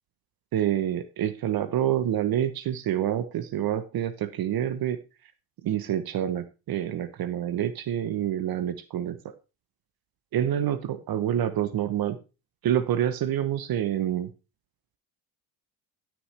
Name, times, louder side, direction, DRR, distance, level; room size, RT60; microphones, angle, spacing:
voice 1, 0.5-5.0 5.6-9.3 10.3-12.2 12.6-14.3, right 10 dB, 60° right, 13 dB, 1.0 m, -27 dB
14.0 x 6.2 x 3.3 m, 0.30 s
cardioid pair, 95°, 41 cm